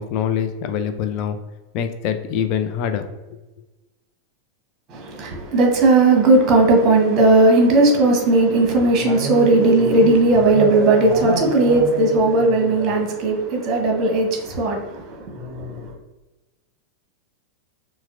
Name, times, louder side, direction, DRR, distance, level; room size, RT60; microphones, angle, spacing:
voice 1, 0.0-1.4 1.7-3.4, left 8 dB, 40° left, 0.4 m, -24 dB
voice 2, 4.9-15.9, right 2 dB, 30° right, 1.0 m, -17 dB
5.6 x 2.1 x 2.5 m
figure-of-eight pair, 90°, 0 cm